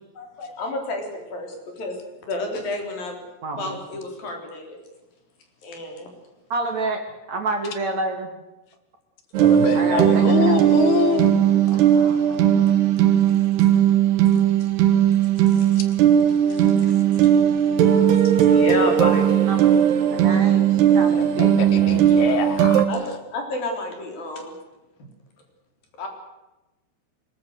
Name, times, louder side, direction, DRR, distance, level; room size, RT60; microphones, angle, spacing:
voice 1, 0.1-3.2 3.6-4.8 5.6-6.1 11.7-12.4 15.5-15.8 16.5-19.5 22.9-24.5 26.0-26.1, left 2 dB, 45° left, 3 dB, 5.0 m, -31 dB
voice 2, 3.4-3.8 6.5-7.0 7.3-8.3 9.7-10.6 19.4-19.7 20.0-22.0, right 2 dB, 45° right, 4 dB, 2.6 m, -28 dB
sound 1, 9.3-22.9, right 10 dB, 65° right, 3.1 m, -18 dB
voice 3, 9.4-11.4 21.1-22.8, left 7 dB, 60° left, 9 dB, 3.0 m, -25 dB
23.0 x 20.0 x 8.0 m, 1.0 s
omnidirectional pair, 6.0 m